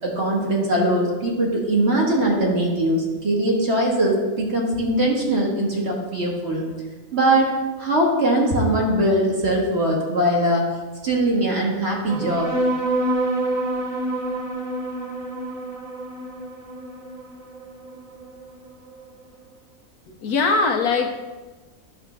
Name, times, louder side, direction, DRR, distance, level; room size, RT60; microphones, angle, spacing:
voice 1, 0.0-6.6 7.1-7.5 7.8-10.6 11.0-12.5, right 1 dB, 45° right, -2 dB, 1.7 m, -21 dB
sound 1, 12.1-19.0, right 1 dB, ahead, 1.2 m, -27 dB
voice 2, 20.1-21.1, left 4 dB, 85° left, 4 dB, 1.4 m, -21 dB
10.0 x 3.4 x 6.1 m, 1.3 s
omnidirectional pair, 1.5 m